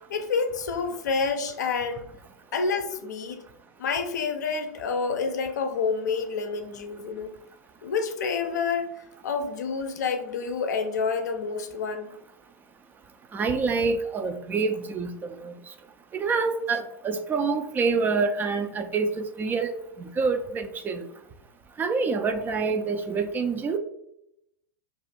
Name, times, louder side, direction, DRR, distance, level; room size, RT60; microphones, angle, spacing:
voice 1, 0.1-2.1 2.5-3.4 3.8-7.3 7.8-8.9 9.2-12.1, left 5 dB, 75° left, 7 dB, 0.5 m, -28 dB
voice 2, 13.3-15.5 16.1-19.7 20.0-21.1 21.8-23.8, right 4 dB, 20° right, 8 dB, 0.3 m, -27 dB
2.4 x 2.4 x 4.1 m, 0.80 s
hypercardioid pair, 100°, 9 cm